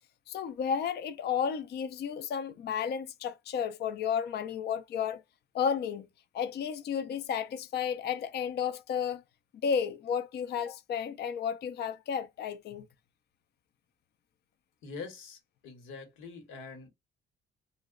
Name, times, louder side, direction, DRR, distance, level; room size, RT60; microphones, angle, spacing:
voice 1, 0.3-5.2 5.5-6.1 6.3-9.2 9.6-12.8, left 7 dB, 55° left, 0.5 m, -32 dB
voice 2, 14.8-16.9, left 4 dB, 90° left, 1.1 m, -44 dB
2.8 x 2.1 x 3.6 m
cardioid pair, 90°, 20 cm